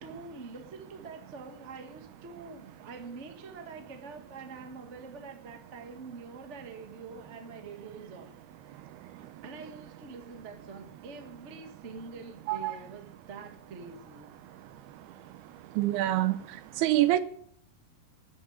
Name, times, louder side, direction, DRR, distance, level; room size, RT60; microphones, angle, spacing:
voice 1, 0.0-8.3 8.6-14.3, right 4 dB, 50° right, 0.8 m, -45 dB
voice 2, 15.8-16.4 16.8-17.2, right 15 dB, 85° right, 2.8 m, -25 dB
13.5 x 6.5 x 9.4 m
omnidirectional pair, 4.5 m